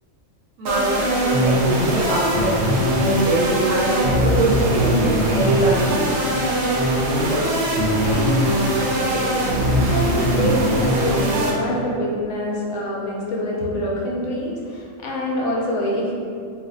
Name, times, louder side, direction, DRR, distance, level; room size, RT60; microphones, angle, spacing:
sound 1, 0.6-11.5, right 1 dB, 65° right, 0.8 m, -20 dB
voice 1, 0.6-6.2, right 2 dB, 90° right, -6 dB, 1.1 m, -23 dB
voice 2, 8.0-16.1, left 1 dB, 70° left, -3 dB, 0.9 m, -26 dB
2.5 x 2.4 x 3.8 m, 2.3 s
omnidirectional pair, 1.4 m